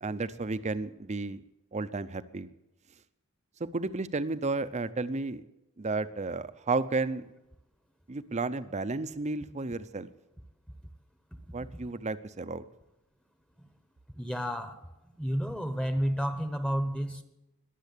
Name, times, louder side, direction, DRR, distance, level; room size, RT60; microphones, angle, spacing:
voice 1, 0.0-1.4 1.7-2.5 3.6-5.4 5.8-7.3 8.1-10.1 11.5-12.6, right 3 dB, 35° right, 13 dB, 0.7 m, -32 dB
voice 2, 14.1-14.8 15.2-17.2, equal, 5° left, 9 dB, 1.0 m, -31 dB
21.0 x 7.7 x 8.4 m, 0.95 s
head